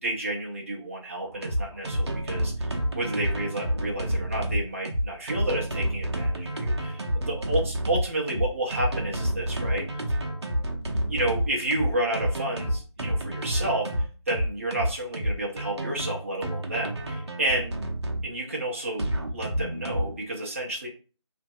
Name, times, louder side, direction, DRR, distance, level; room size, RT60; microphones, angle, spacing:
voice 1, 0.0-9.8 11.1-13.9 14.3-17.7 18.2-20.9, right 1 dB, 25° right, -2 dB, 0.6 m, -31 dB
sound 1, 1.2-18.2 19.0-20.2, equal, 65° right, 0.7 m, -29 dB
2.8 x 2.6 x 2.3 m, 0.36 s
figure-of-eight pair, 160°, 15 cm